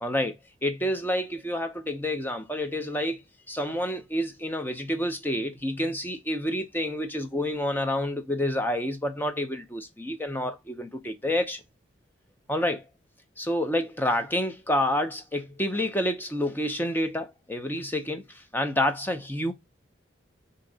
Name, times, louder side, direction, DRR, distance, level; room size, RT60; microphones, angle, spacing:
voice 1, 0.0-3.2 3.5-11.6 12.5-12.8 13.4-19.5, left 1 dB, 10° left, 0.6 m, -28 dB
4.4 x 2.8 x 3.9 m
head